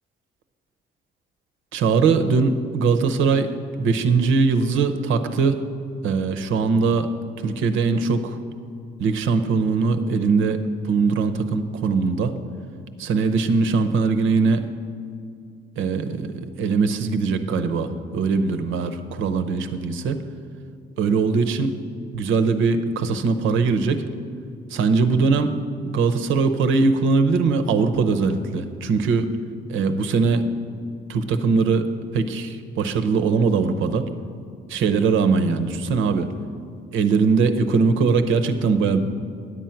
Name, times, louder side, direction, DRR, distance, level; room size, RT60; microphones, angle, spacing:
voice 1, 1.7-3.5 3.8-5.6 6.0-7.1 7.4-8.4 9.0-10.6 10.9-12.3 13.0-14.6 15.8-20.2 21.0-21.8 22.1-24.0 24.7-25.5 25.8-29.3 29.7-30.4 31.1-31.9 32.1-34.1 34.7-36.3 36.9-39.0, right 4 dB, 85° right, 9 dB, 0.7 m, -21 dB
9.9 x 7.6 x 5.7 m, 2.4 s
cardioid pair, 90°, 20 cm